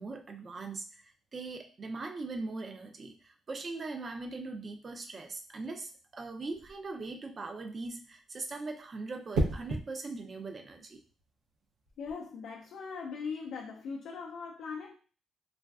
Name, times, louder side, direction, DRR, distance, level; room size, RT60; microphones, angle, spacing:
voice 1, 0.0-11.0, right 3 dB, 40° right, 5 dB, 0.5 m, -40 dB
sound 1, 6.5-6.9 9.3-9.9 11.9-12.1, right 2 dB, 90° right, 0.6 m, -31 dB
voice 2, 12.0-14.9, left 5 dB, 70° left, 0 dB, 0.4 m, -40 dB
3.1 x 2.4 x 2.3 m, 0.38 s
cardioid pair, 90°, 0 cm